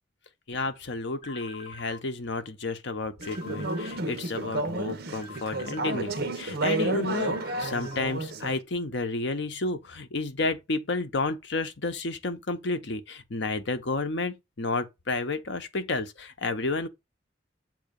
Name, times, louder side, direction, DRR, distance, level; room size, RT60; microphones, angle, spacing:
voice 1, 0.5-16.9, left 3 dB, 65° left, 0.9 m, -31 dB
sound 1, 1.2-2.0 3.2-4.0 5.2-6.0 7.2-8.0, left 3 dB, 40° left, 2.6 m, -45 dB
Conversation / Chatter, 3.2-8.6, right 2 dB, 55° right, 0.9 m, -31 dB
7.5 x 2.8 x 5.2 m
head